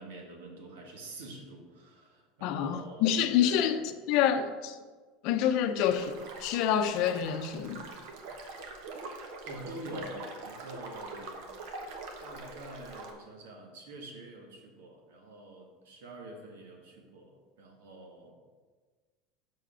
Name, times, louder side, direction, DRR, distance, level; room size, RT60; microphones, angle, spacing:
voice 1, 0.0-3.8 9.5-11.4 12.2-17.3 17.6-18.3, right 1 dB, 90° right, 1.6 m, -46 dB
voice 2, 2.4-3.8 4.1-4.8 5.2-7.9, left 9 dB, 60° left, 0.6 m, -27 dB
sound 1, 5.8-13.1, right 3 dB, 65° right, 1.1 m, -44 dB
5.8 x 5.0 x 5.7 m
supercardioid pair, 120°, 0 cm